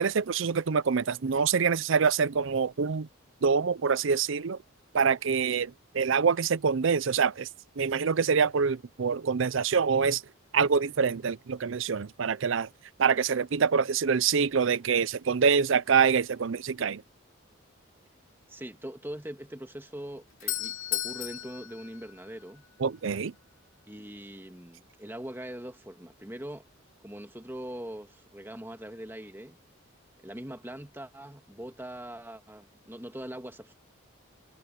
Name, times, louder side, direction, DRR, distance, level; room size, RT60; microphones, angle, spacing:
voice 1, 0.0-3.1 3.4-4.6 4.9-7.5 7.8-10.2 10.5-12.7 13.0-17.0 22.8-23.3, right 6 dB, 65° right, 0.5 m, -25 dB
voice 2, 18.5-22.6 23.9-26.7 27.0-29.6 30.2-33.7, right 1 dB, 10° right, 1.7 m, -42 dB
Doorbell, 20.0-22.9, left 14 dB, 70° left, 2.9 m, -35 dB
head